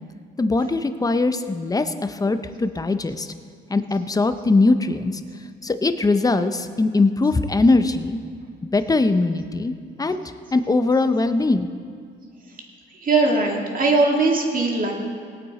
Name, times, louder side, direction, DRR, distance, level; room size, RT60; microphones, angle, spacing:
voice 1, 0.4-3.3 3.7-5.2 5.6-8.2 8.7-9.7 10.0-10.2 10.5-11.7, left 3 dB, 20° left, 9 dB, 0.7 m, -21 dB
voice 2, 13.0-14.9, right 3 dB, 45° right, 0 dB, 2.2 m, -20 dB
18.5 x 8.6 x 4.2 m, 2.1 s
cardioid pair, 90°, 20 cm